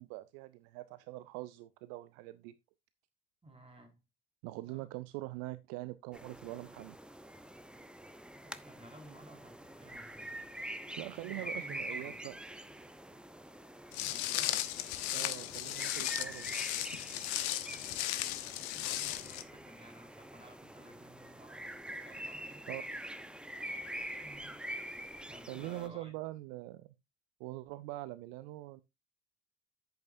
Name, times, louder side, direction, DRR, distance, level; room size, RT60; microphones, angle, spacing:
voice 1, 0.0-2.5 4.4-7.0 11.0-12.4 15.1-16.7 22.1-22.2 22.7-22.8 25.5-26.9 27.4-28.8, right 18 dB, 60° right, 0.6 m, -43 dB
voice 2, 3.4-4.0 4.7-4.9 8.4-10.3 11.2-12.2 14.0-14.6 17.7-22.7 24.2-24.6 25.2-26.1, right 1 dB, 20° right, 4.8 m, -56 dB
sound 1, 6.1-25.9, right 1 dB, 5° right, 0.9 m, -45 dB
Walk footsteps, 13.9-19.4, left 14 dB, 65° left, 1.0 m, -36 dB
10.5 x 8.3 x 2.6 m
figure-of-eight pair, 55°, 31 cm